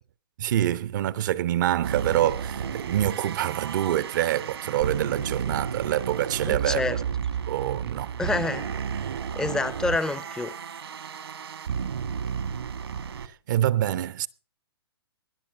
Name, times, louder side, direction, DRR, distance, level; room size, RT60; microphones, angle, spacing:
voice 1, 0.4-6.8 7.5-8.2 13.5-14.3, right 12 dB, 50° right, 0.6 m, -26 dB
sound 1, 1.8-13.3, right 7 dB, 75° right, 1.5 m, -32 dB
voice 2, 6.5-7.0 8.2-8.7 9.3-10.5, left 3 dB, 5° left, 0.5 m, -27 dB
19.5 x 7.0 x 6.0 m
hypercardioid pair, 135°, 13 cm